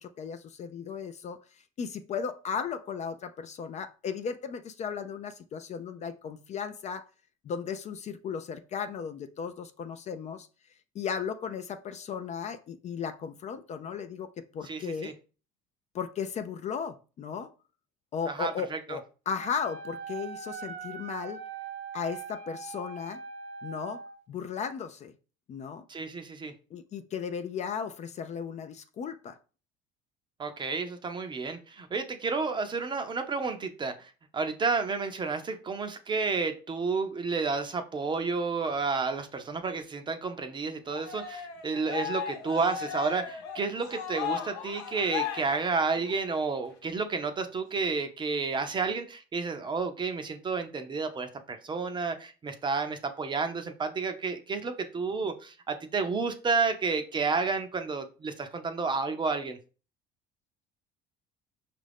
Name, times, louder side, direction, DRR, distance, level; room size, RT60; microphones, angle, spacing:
voice 1, 0.0-1.4 1.8-7.1 7.4-10.5 10.9-15.1 15.9-17.5 18.1-21.4 21.9-23.2 23.6-24.0 24.3-25.1 25.5-25.8 26.7-29.4, left 6 dB, 35° left, 0.4 m, -36 dB
voice 2, 14.7-15.1 18.3-19.0 25.9-26.5 30.4-59.6, right 4 dB, 25° right, 0.6 m, -31 dB
Wind instrument woodwind instrument, 19.4-24.2, right 5 dB, 65° right, 0.8 m, -41 dB
Cheering, 40.9-46.4, left 8 dB, 80° left, 1.0 m, -36 dB
5.3 x 2.5 x 3.4 m
cardioid pair, 110°, 19 cm